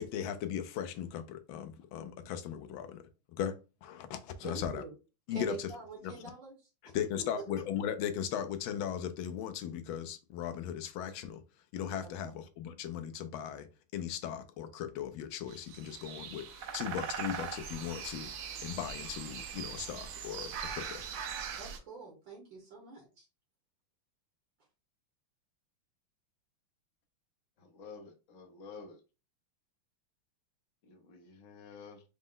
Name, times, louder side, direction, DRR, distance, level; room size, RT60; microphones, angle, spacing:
voice 1, 0.0-3.0 3.4-4.8 5.3-5.7 6.0-6.1 6.9-11.4 11.7-13.7 13.9-18.3 18.6-21.0, left 9 dB, 75° left, 1.3 m, -38 dB
voice 2, 4.4-4.9 5.3-6.5 12.2-12.3 21.6-23.3, right 4 dB, 60° right, 1.8 m, -45 dB
sound 1, 15.5-21.8, right 7 dB, 80° right, 0.8 m, -41 dB
voice 3, 27.6-29.0 30.9-32.0, left 5 dB, 55° left, 0.9 m, -50 dB
4.9 x 2.1 x 3.7 m
omnidirectional pair, 2.4 m